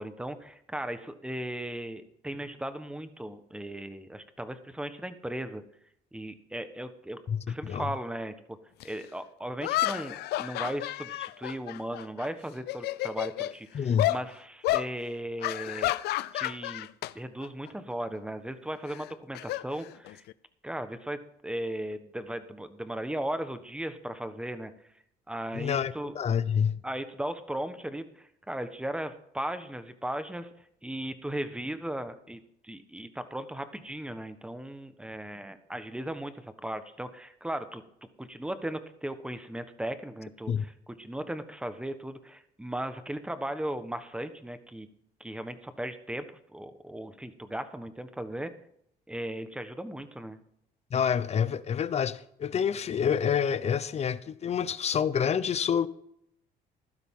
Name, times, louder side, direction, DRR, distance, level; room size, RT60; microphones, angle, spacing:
voice 1, 0.0-5.6 6.1-7.2 7.5-8.3 8.8-16.0 16.3-16.9 17.1-20.2 20.6-24.7 25.3-26.1 26.8-30.5 30.8-37.8 38.2-44.9 45.2-46.3 46.5-48.5 49.1-50.4, right 1 dB, 5° right, 1.3 m, -37 dB
voice 2, 7.3-7.9 13.7-14.1 25.5-26.8 40.5-40.7 50.9-55.9, left 7 dB, 40° left, 0.8 m, -28 dB
sound 1, 8.8-8.9 9.6-12.3 12.6-13.5 14.0-14.2 14.6-14.9 15.4-17.1 17.4-17.7 18.9-20.3, left 16 dB, 75° left, 0.5 m, -31 dB
15.0 x 12.0 x 3.8 m
cardioid pair, 110°, 17 cm